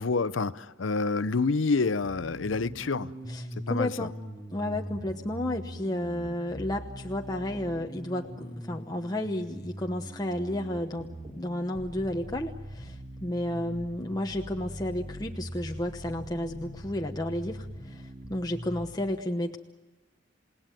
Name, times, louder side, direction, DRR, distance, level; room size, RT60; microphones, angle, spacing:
voice 1, 0.0-3.1 3.7-4.1, left 4 dB, 90° left, 0.7 m, -28 dB
sound 1, 2.0-19.0, equal, 25° right, 4.1 m, -42 dB
voice 2, 3.3-4.1 4.5-19.6, left 1 dB, 20° left, 1.0 m, -32 dB
28.5 x 18.5 x 9.1 m
head